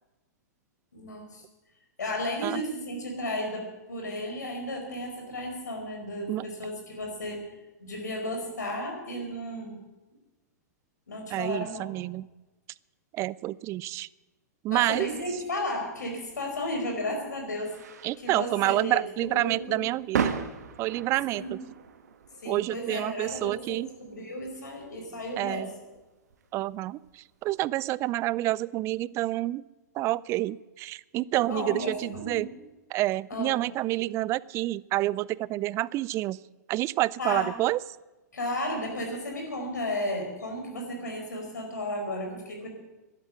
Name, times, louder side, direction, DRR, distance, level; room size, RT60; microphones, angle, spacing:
voice 1, 0.9-1.4 2.0-7.5 7.8-9.8 11.1-11.9 14.7-17.7 18.2-19.0 19.4-19.9 21.3-21.5 22.4-25.7 31.3-32.5 33.3-33.6 37.2-37.5 38.3-42.7, left 1 dB, 80° left, 2 dB, 5.0 m, -34 dB
voice 2, 11.3-12.3 13.1-14.1 14.6-15.1 18.0-20.3 20.8-21.6 22.5-23.9 25.4-25.7 26.5-29.6 29.9-32.5 32.9-36.4 36.7-37.8, right 16 dB, 30° right, 22 dB, 0.4 m, -28 dB
sound 1, 16.2-27.5, right 7 dB, 65° right, 1.4 m, -38 dB
12.0 x 11.5 x 8.6 m, 1.1 s
figure-of-eight pair, 110°, 9 cm